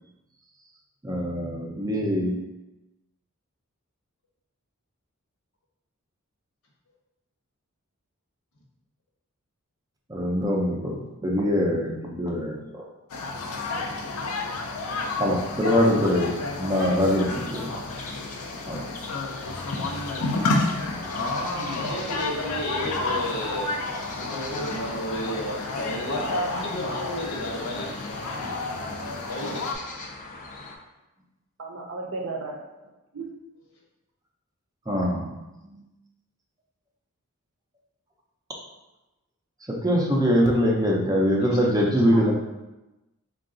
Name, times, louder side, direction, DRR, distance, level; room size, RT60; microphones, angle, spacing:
voice 1, 1.0-2.4 10.1-12.8 15.2-16.3 16.6-17.7 18.7-18.8 34.9-35.3 35.6-35.8 39.7-42.3, equal, 15° right, -1 dB, 0.5 m, -23 dB
sound 1, 13.1-29.7, left 2 dB, 90° left, 0.5 m, -31 dB
sound 2, 17.1-30.8, left 3 dB, 35° left, 0.5 m, -42 dB
voice 2, 21.6-23.8 24.1-27.9 29.3-29.6 41.4-41.6, left 1 dB, 70° left, -2 dB, 1.0 m, -32 dB
voice 3, 31.6-32.6 33.1-33.3 42.1-42.3, right 3 dB, 65° right, 1 dB, 0.6 m, -34 dB
3.7 x 2.3 x 3.7 m, 1.0 s
head